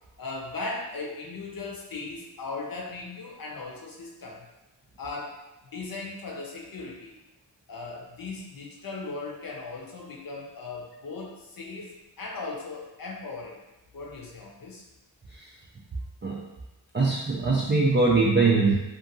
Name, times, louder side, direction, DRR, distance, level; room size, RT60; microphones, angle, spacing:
voice 1, 0.2-4.5 5.0-5.4 5.7-7.1 7.7-13.6 13.9-14.8, left 3 dB, 50° left, -2 dB, 0.8 m, -38 dB
voice 2, 16.9-18.7, right 3 dB, 25° right, -4 dB, 0.4 m, -22 dB
2.7 x 2.5 x 2.6 m, 1.0 s
cardioid pair, 45°, 46 cm